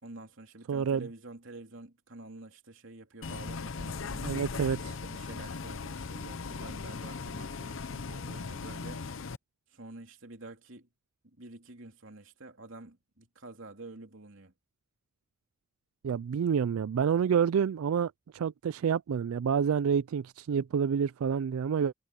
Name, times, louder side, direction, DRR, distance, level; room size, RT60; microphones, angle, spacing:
voice 1, 0.0-4.3 5.0-9.1 9.7-10.9 11.2-14.5, right 2 dB, 65° right, 3.2 m, -48 dB
voice 2, 0.7-1.0 4.2-5.0 16.0-21.9, right 7 dB, 80° right, 0.3 m, -28 dB
Bus, 3.2-9.4, left 4 dB, 65° left, 0.7 m, -38 dB
head